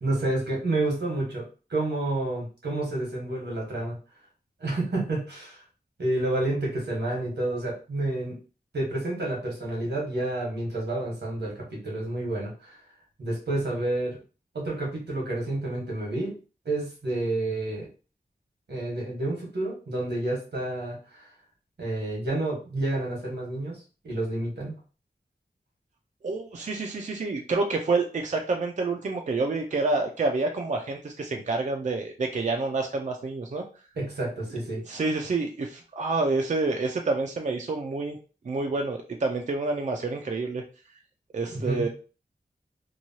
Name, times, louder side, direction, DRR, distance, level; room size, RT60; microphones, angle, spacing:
voice 1, 0.0-4.0 4.6-5.6 6.0-8.4 8.7-12.8 13.2-14.2 14.5-16.3 16.6-17.9 18.7-21.3 21.8-23.7 24.0-24.8 34.0-34.8 41.5-41.9, right 2 dB, 90° right, -2 dB, 1.3 m, -29 dB
voice 2, 26.2-33.6 34.9-38.2 38.5-40.6 41.3-41.9, right 3 dB, 45° right, 2 dB, 0.4 m, -28 dB
3.0 x 2.3 x 2.7 m, 0.35 s
wide cardioid pair, 85°, 17 cm